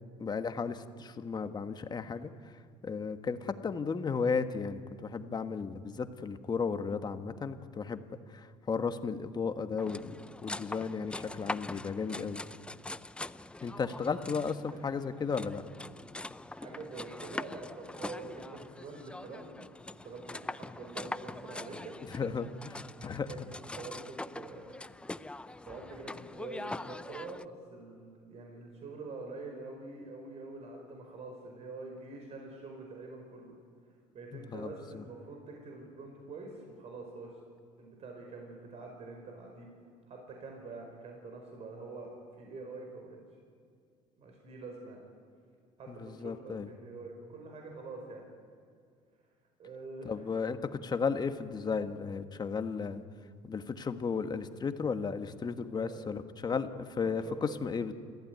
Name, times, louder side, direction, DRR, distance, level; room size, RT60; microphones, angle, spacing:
voice 1, 0.2-2.3 2.8-10.1 10.4-12.4 13.6-15.6 22.1-23.5 34.3-34.7 45.9-46.7 50.0-53.0 53.4-56.7 57.0-57.9, left 5 dB, 30° left, 8 dB, 1.5 m, -34 dB
sound 1, 9.8-27.5, left 2 dB, 10° left, 0.5 m, -43 dB
voice 2, 16.5-19.6 19.9-21.9 23.2-23.4 23.7-24.8 25.4-33.5 34.1-37.4 37.8-39.7 40.1-43.2 44.2-45.0 45.8-48.2 49.6-50.2 55.8-56.0 56.5-56.6 57.0-57.6, right 3 dB, 50° right, 2 dB, 5.0 m, -45 dB
28.5 x 15.0 x 9.4 m, 2.1 s
cardioid pair, 100°, 14 cm